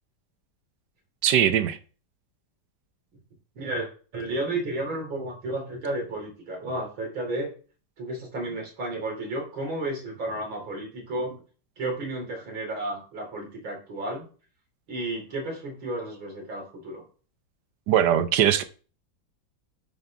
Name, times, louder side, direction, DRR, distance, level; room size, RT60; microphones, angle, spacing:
voice 1, 1.2-1.8 17.9-18.6, right 10 dB, 65° right, 1.3 m, -21 dB
voice 2, 3.6-3.9 4.1-7.5 8.0-11.4 11.8-14.3 14.9-17.0, right 2 dB, 90° right, 3.7 m, -32 dB
9.0 x 5.8 x 3.5 m
omnidirectional pair, 2.1 m